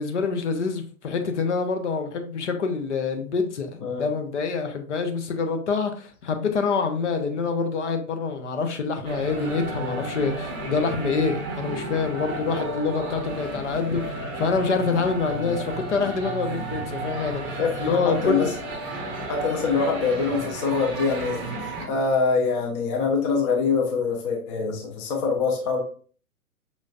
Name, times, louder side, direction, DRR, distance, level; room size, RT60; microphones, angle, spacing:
voice 1, 0.0-14.0 14.3-18.5, left 4 dB, 55° left, 6 dB, 0.8 m, -26 dB
sound 1, 9.0-21.9, right 2 dB, 20° right, 0.7 m, -33 dB
voice 2, 17.6-18.5 19.3-25.8, left 5 dB, 20° left, 0 dB, 0.6 m, -25 dB
5.3 x 3.1 x 2.4 m, 0.43 s
figure-of-eight pair, 115°, 43 cm